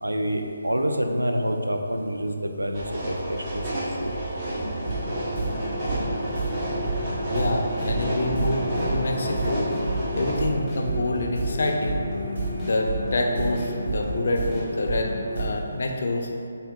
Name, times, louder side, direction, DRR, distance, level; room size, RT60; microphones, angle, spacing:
voice 1, 0.0-4.1, equal, 85° right, 4 dB, 0.3 m, -27 dB
sound 1, 2.7-10.4, right 1 dB, 30° right, 0.9 m, -30 dB
sound 2, 4.8-15.4, right 1 dB, 65° right, 1.0 m, -30 dB
voice 2, 7.3-9.7 10.1-12.0 12.6-15.1 15.4-16.3, left 2 dB, 55° left, 2 dB, 0.4 m, -27 dB
sound 3, 7.3-7.4 7.8-7.9 8.3-8.4 8.7-8.9 9.2-9.4 9.7-9.8 10.2-10.3 10.7-10.8 11.2-11.3 11.6-11.8 12.1-12.2 12.6-12.7 13.1-13.2 13.6-13.7 14.0-14.2 14.5-14.6, left 2 dB, 10° left, 0.7 m, -39 dB
4.9 x 2.6 x 2.3 m, 2.6 s
figure-of-eight pair, 145°, 0 cm